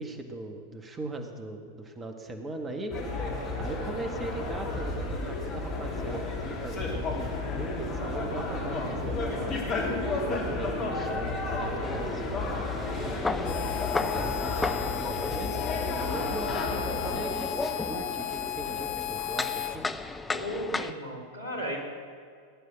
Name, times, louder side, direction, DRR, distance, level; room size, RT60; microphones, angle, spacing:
voice 1, 0.0-3.0 3.6-9.6 10.3-13.7 14.0-15.6 15.9-19.9, right 2 dB, 20° right, 5 dB, 1.7 m, -40 dB
sound 1, 2.9-17.2, left 2 dB, 35° left, 3.4 m, -32 dB
sound 2, 11.8-20.9, left 3 dB, 10° left, 0.7 m, -35 dB
Harmonica, 13.4-19.8, left 14 dB, 50° left, 1.0 m, -35 dB
voice 2, 20.3-21.8, equal, 75° left, 0 dB, 3.9 m, -35 dB
19.0 x 11.0 x 6.3 m, 2.3 s
figure-of-eight pair, 90°, 0 cm